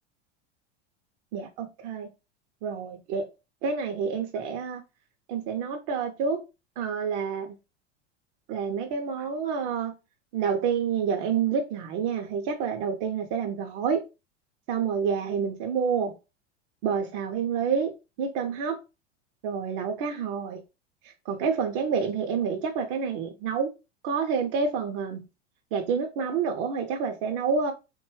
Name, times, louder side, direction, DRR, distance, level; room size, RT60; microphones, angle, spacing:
voice 1, 1.3-2.1 2.6-3.3 3.6-4.8 5.3-6.4 6.8-7.5 8.5-9.9 10.3-14.0 14.7-16.1 16.8-18.8 19.4-20.6 21.0-23.7 24.0-25.3 25.7-27.7, right 6 dB, 45° right, 0.4 m, -28 dB
2.6 x 2.2 x 3.0 m
hypercardioid pair, 85°, 36 cm